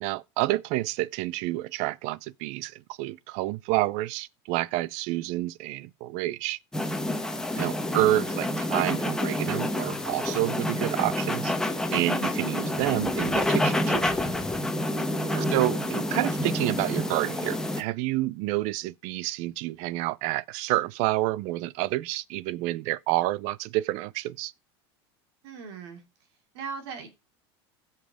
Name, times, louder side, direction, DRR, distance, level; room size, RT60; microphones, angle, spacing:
voice 1, 0.0-6.6 7.6-11.5 11.9-14.1 15.5-24.5, right 17 dB, 60° right, 0.6 m, -29 dB
sound 1, 6.7-17.8, left 1 dB, 5° left, 1.3 m, -28 dB
voice 2, 8.0-8.4 15.3-15.5 25.4-26.0 26.5-27.1, right 6 dB, 75° right, 3.0 m, -39 dB
15.5 x 5.7 x 4.9 m
supercardioid pair, 120°, 14 cm